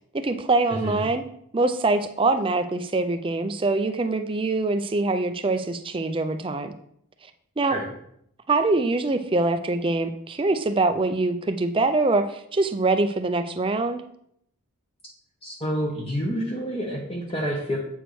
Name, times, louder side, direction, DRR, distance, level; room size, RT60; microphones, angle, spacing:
voice 1, 0.1-1.2 1.5-6.8 7.6-7.7 8.5-14.0, right 3 dB, 25° right, 9 dB, 0.4 m, -24 dB
voice 2, 0.7-1.1 7.7-7.8 15.4-17.8, equal, 25° left, -2 dB, 0.9 m, -28 dB
7.9 x 6.1 x 3.2 m, 0.72 s
head